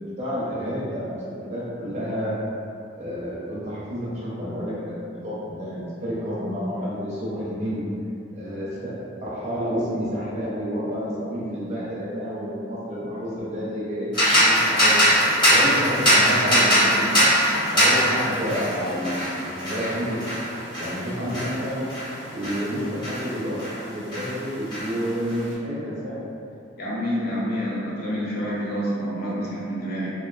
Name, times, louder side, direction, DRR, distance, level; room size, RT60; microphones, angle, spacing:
voice 1, 0.0-2.4 3.0-7.8 8.3-8.9 9.2-15.0 15.5-17.3 17.7-20.2 20.8-21.8 22.3-26.2, equal, 35° right, -8 dB, 0.5 m, -29 dB
sound 1, 14.1-23.8 24.1-25.4, equal, 25° left, 0.8 m, -22 dB
voice 2, 26.8-30.1, equal, 50° left, -7 dB, 0.5 m, -28 dB
2.5 x 2.2 x 2.3 m, 2.5 s
head